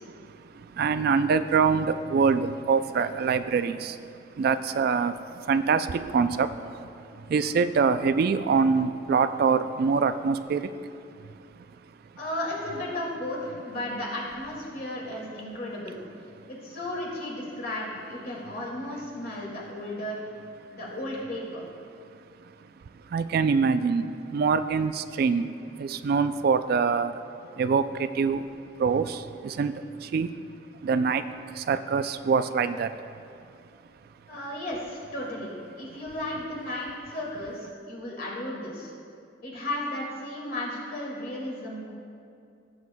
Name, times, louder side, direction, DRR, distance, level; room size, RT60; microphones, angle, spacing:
voice 1, 0.0-12.1 16.4-16.5 22.4-30.3 30.8-33.3 35.9-36.0, right 5 dB, 55° right, 0.3 m, -26 dB
voice 2, 12.2-16.0 16.5-20.2 20.7-21.6 34.3-38.9 39.4-41.9, left 1 dB, 55° left, 2.1 m, -34 dB
17.5 x 7.3 x 2.2 m
head